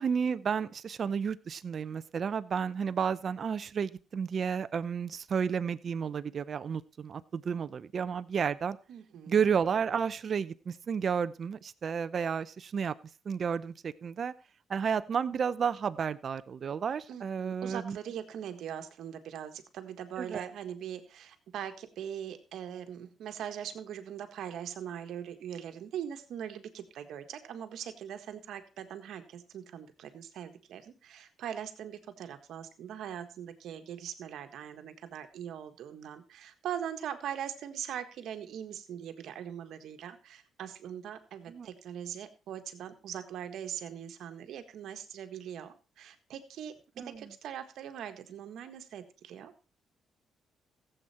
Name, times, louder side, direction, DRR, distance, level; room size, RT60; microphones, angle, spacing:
voice 1, 0.0-8.8 9.3-12.9 13.3-14.3 14.7-18.0 20.2-20.5 41.5-41.7 47.0-47.3, right 6 dB, 50° right, 15 dB, 0.7 m, -32 dB
voice 2, 8.9-9.5 17.1-49.5, right 9 dB, 75° right, 8 dB, 1.6 m, -41 dB
15.0 x 8.0 x 4.3 m, 0.35 s
cardioid pair, 90°, 0 cm